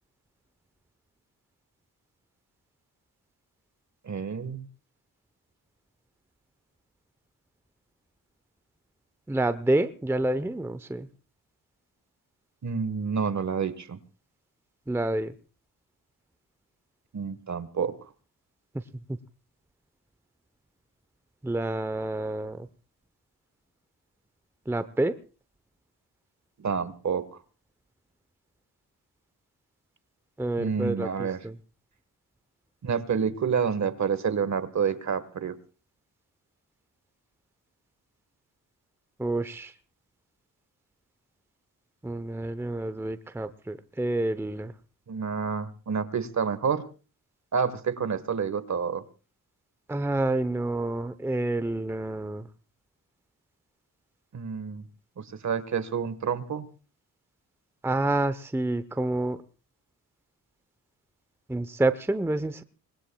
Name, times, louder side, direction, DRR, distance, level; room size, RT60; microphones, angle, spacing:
voice 1, 4.0-4.7 12.6-14.0 17.1-17.9 26.6-27.3 30.6-31.4 32.8-35.5 45.1-46.8 47.5-49.0 54.3-54.9 55.2-56.7, right 6 dB, 50° right, 14 dB, 1.5 m, -28 dB
voice 2, 9.3-11.1 14.9-15.3 21.4-22.7 24.7-25.1 30.4-31.6 39.2-39.7 42.0-44.7 49.9-52.5 57.8-59.4 61.5-62.6, right 2 dB, 5° right, 13 dB, 0.8 m, -28 dB
25.5 x 20.0 x 2.3 m, 0.35 s
cardioid pair, 65°, 37 cm